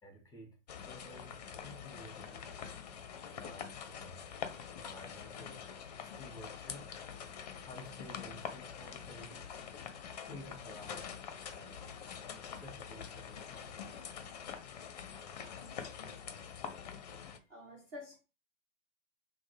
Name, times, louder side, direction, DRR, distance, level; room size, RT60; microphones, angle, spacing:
voice 1, 0.0-2.5 3.3-4.2 4.8-5.7 6.0-6.9 7.6-9.5 10.2-11.2 11.5-12.0 12.4-13.9, left 1 dB, 10° left, 1.0 m, -53 dB
sound 1, 0.7-17.4, left 7 dB, 35° left, 0.5 m, -45 dB
voice 2, 17.5-18.2, left 2 dB, 15° right, 0.4 m, -48 dB
6.0 x 2.1 x 3.1 m
figure-of-eight pair, 115°, 37 cm